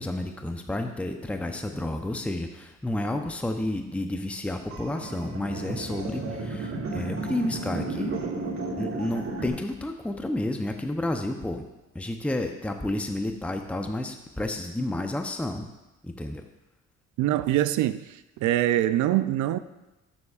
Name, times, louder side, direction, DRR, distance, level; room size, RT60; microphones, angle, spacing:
voice 1, 0.0-8.2 8.8-11.6 11.9-15.7 16.0-16.4, left 1 dB, 5° left, 5 dB, 0.7 m, -31 dB
sound 1, 4.7-9.5, right 2 dB, 50° right, 1.9 m, -33 dB
voice 2, 17.2-18.1 18.4-19.6, right 13 dB, 75° right, 13 dB, 0.5 m, -23 dB
12.0 x 7.2 x 2.4 m, 1.0 s
supercardioid pair, 75°, 30 cm